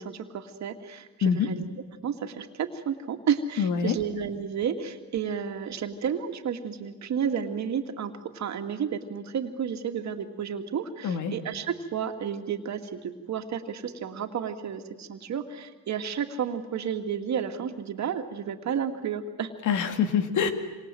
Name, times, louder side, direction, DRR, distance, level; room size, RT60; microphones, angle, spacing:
voice 1, 0.0-1.7 2.0-19.5, right 7 dB, 65° right, 5 dB, 2.4 m, -31 dB
voice 2, 3.6-4.0 11.0-11.3 19.6-20.5, left 7 dB, 80° left, 7 dB, 2.4 m, -25 dB
26.5 x 26.5 x 7.8 m, 1.2 s
cardioid pair, 90°, 30 cm